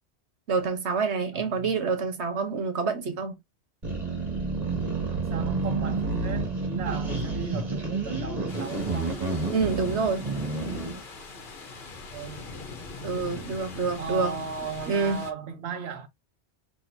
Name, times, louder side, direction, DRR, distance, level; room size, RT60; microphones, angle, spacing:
voice 1, 0.5-3.3 9.5-10.3 13.0-14.3 14.9-15.2, right 4 dB, 90° right, 1.4 m, -27 dB
voice 2, 1.3-2.1 5.1-9.2 12.1-12.4 13.0-13.3 14.0-16.1, right 6 dB, 70° right, 1.1 m, -37 dB
sound 1, 3.8-11.0, right 3 dB, 35° right, 2.3 m, -29 dB
sound 2, 8.5-15.3, left 3 dB, 50° left, 1.2 m, -42 dB
6.1 x 3.2 x 2.6 m
omnidirectional pair, 1.1 m